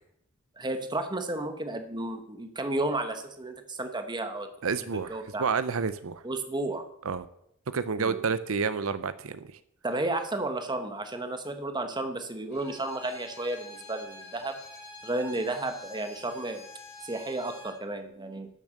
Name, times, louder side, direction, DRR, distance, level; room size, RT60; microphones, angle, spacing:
voice 1, 0.6-4.5 5.1-5.5 6.2-6.8 8.0-8.2 9.8-14.6 15.0-16.7 17.0-18.5, right 2 dB, 20° right, 7 dB, 1.3 m, -32 dB
voice 2, 4.6-6.2 7.0-7.3 7.7-9.5, right 5 dB, 80° right, 14 dB, 0.6 m, -29 dB
Bowed string instrument, 12.5-17.8, left 2 dB, 55° left, 5.0 m, -47 dB
12.0 x 7.1 x 6.6 m, 0.74 s
head